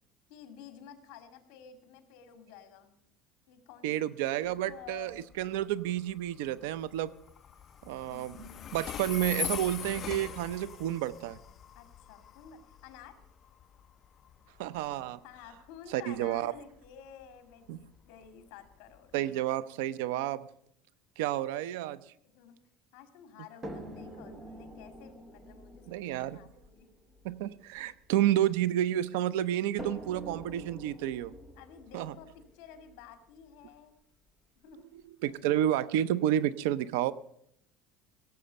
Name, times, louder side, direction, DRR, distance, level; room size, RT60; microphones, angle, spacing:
voice 1, 0.3-2.9 3.5-4.0 4.6-5.2 8.0-8.9 11.7-13.2 15.2-19.1 22.2-22.6 22.9-26.9 28.4-28.5 31.6-33.9 34.6-34.9, left 8 dB, 55° left, 7 dB, 2.1 m, -52 dB
voice 2, 3.8-7.1 7.9-8.4 8.7-11.4 14.6-15.2 15.9-16.5 17.7-17.8 19.1-20.4 21.2-22.0 25.9-26.4 27.2-31.3 31.9-32.1 35.2-37.1, right 12 dB, 85° right, 17 dB, 0.5 m, -30 dB
Train, 4.4-19.2, left 9 dB, 25° left, 0.5 m, -43 dB
sound 1, 23.6-28.8 29.8-33.8 34.7-34.8 35.3-35.4, right 1 dB, 15° right, 1.1 m, -47 dB
17.0 x 7.6 x 6.9 m, 0.71 s
cardioid pair, 175°, 0 cm